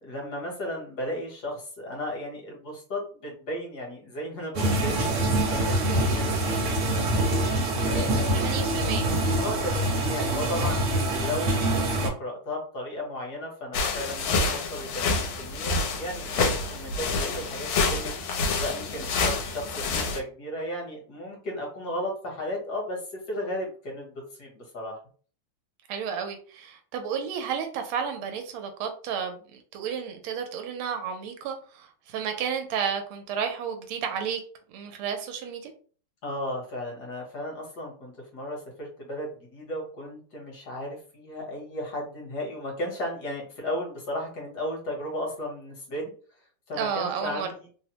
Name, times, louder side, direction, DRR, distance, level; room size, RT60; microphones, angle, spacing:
voice 1, 0.0-7.1 7.7-8.4 9.4-18.2 18.6-23.0 23.3-25.0 36.2-46.1 46.7-47.7, left 1 dB, 55° left, -1 dB, 1.3 m, -35 dB
sound 1, 4.6-12.1, right 1 dB, 70° right, 1.5 m, -25 dB
voice 2, 7.9-9.1 25.9-34.4 34.7-35.7 46.7-47.5, right 7 dB, 85° right, 5 dB, 1.5 m, -32 dB
sound 2, 13.7-20.2, left 3 dB, 75° left, 1.4 m, -28 dB
3.4 x 2.0 x 2.8 m, 0.42 s
omnidirectional pair, 2.3 m